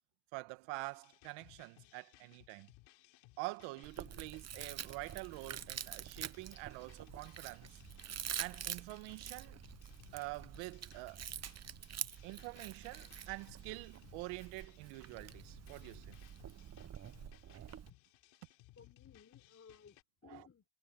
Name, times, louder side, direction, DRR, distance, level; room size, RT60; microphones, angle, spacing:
voice 1, 0.3-2.7 3.4-7.8 8.4-9.6 10.1-11.3 12.2-16.2 17.4-17.7 20.2-20.4, right 22 dB, 85° right, 1.7 m, -46 dB
sound 1, 0.7-20.0, left 19 dB, 75° left, 5.8 m, -63 dB
Chewing mastication, 3.8-17.9, right 9 dB, 35° right, 1.0 m, -47 dB
voice 2, 18.8-20.6, left 6 dB, 30° left, 4.1 m, -60 dB
supercardioid pair, 90°, 46 cm